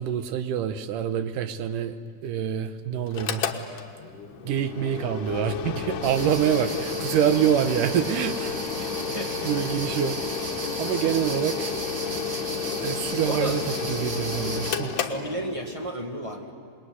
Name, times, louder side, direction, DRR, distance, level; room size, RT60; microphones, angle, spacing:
voice 1, 0.0-3.4 4.4-8.9 9.4-10.2 10.8-11.7 12.8-13.6 13.9-14.9, right 9 dB, 85° right, 9 dB, 2.6 m, -26 dB
Mechanical fan, 3.1-15.9, left 6 dB, 80° left, 2.8 m, -32 dB
sound 1, 6.0-14.8, right 3 dB, 35° right, 2.1 m, -35 dB
voice 2, 9.1-9.5 13.2-13.6 14.9-16.5, right 1 dB, 15° right, 0 dB, 1.2 m, -32 dB
27.0 x 21.0 x 9.6 m, 2.1 s
omnidirectional pair, 3.7 m